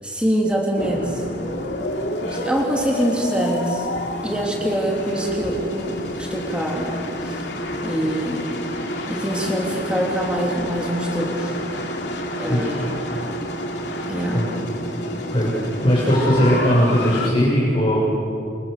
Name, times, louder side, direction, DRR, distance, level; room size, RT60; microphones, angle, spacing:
voice 1, 0.0-1.2 2.2-3.9 4.2-7.5 7.8-8.5 9.1-11.6 12.4-12.9 14.1-14.4, right 1 dB, 5° right, -2 dB, 3.3 m, -24 dB
sound 1, 0.8-17.3, left 1 dB, 70° left, 3.0 m, -29 dB
voice 2, 12.4-12.7 14.3-14.4 15.3-18.0, equal, 30° left, -7 dB, 7.1 m, -19 dB
29.5 x 28.0 x 6.9 m, 2.6 s
head